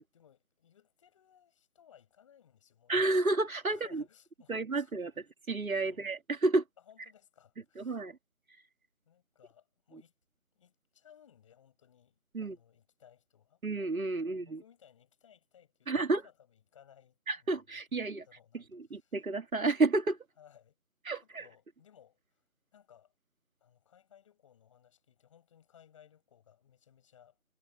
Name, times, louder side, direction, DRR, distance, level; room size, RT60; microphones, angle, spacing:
voice 1, 0.0-3.0 3.7-5.0 5.8-6.0 6.9-8.0 9.1-10.1 10.5-13.6 14.2-17.2 18.0-18.6 18.9-19.1 20.4-20.8 21.2-22.4 22.7-23.1 23.6-27.4, left 9 dB, 20° left, 6.9 m, -62 dB
voice 2, 2.9-4.0 4.5-6.6 7.8-8.2 8.5-8.6 12.3-12.6 13.6-14.6 15.9-16.3 17.3-18.3 18.5-20.2 21.1-21.5, right 3 dB, 70° right, 2.2 m, -31 dB
figure-of-eight pair, 165°, 43 cm